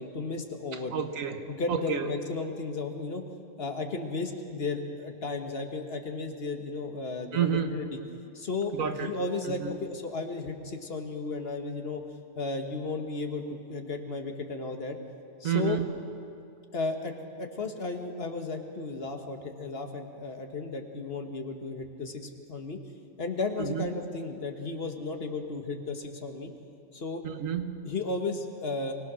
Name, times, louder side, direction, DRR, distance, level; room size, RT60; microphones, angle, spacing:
voice 1, 0.0-0.9 1.5-3.2 3.6-7.8 8.3-12.0 12.3-15.0 15.4-15.8 16.7-22.2 22.5-22.8 23.2-26.5 26.9-27.2 27.8-28.9, left 3 dB, 50° left, 4 dB, 1.6 m, -34 dB
voice 2, 0.9-2.1 7.3-7.8 8.7-9.1 9.5-9.8 15.4-15.8 23.6-23.9 27.2-27.8, right 8 dB, 90° right, 8 dB, 1.5 m, -30 dB
24.5 x 17.5 x 6.3 m, 2.5 s
omnidirectional pair, 1.3 m